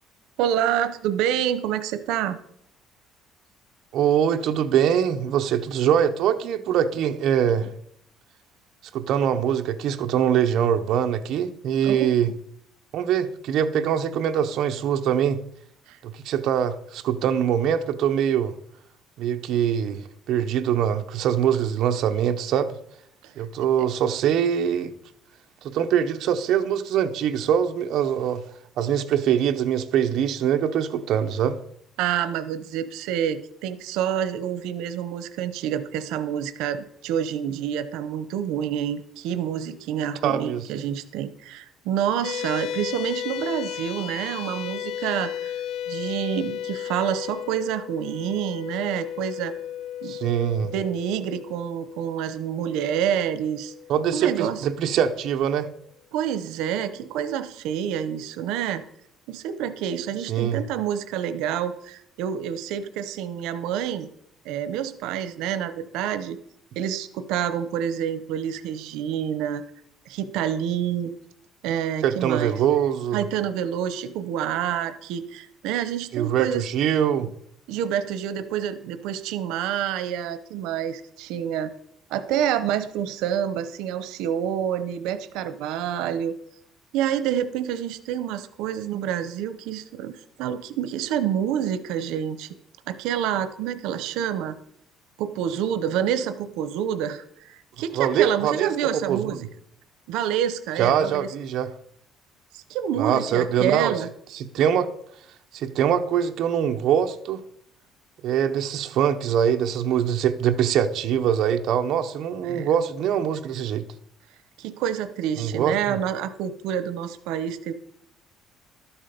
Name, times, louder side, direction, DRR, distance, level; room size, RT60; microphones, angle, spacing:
voice 1, 0.4-2.4 11.8-12.3 15.9-16.0 23.2-23.4 32.0-49.5 50.0-50.2 50.7-53.7 54.1-54.6 56.1-58.8 59.3-64.1 64.4-66.4 66.8-69.6 70.1-71.1 71.6-72.5 73.1-76.7 77.7-81.7 82.1-86.3 86.9-92.5 92.9-94.6 95.2-99.5 100.1-101.3 102.5-104.1 112.4-112.7 114.6-117.7, right 9 dB, 90° right, 0.8 m, -28 dB
voice 2, 3.9-7.7 8.9-12.3 12.9-15.4 16.0-18.5 19.2-20.0 20.3-22.7 23.4-24.9 25.6-28.4 28.8-31.6 40.2-40.6 50.0-50.7 53.9-55.7 60.3-60.6 72.0-73.2 76.1-77.3 97.9-98.7 99.1-99.4 100.8-101.7 103.0-103.9 104.3-104.9 105.5-107.4 108.2-113.8 115.4-116.0, right 9 dB, 55° right, 0.8 m, -23 dB
sound 1, 42.2-54.9, left 11 dB, 55° left, 0.4 m, -35 dB
12.5 x 7.3 x 5.2 m
cardioid pair, 175°, 0 cm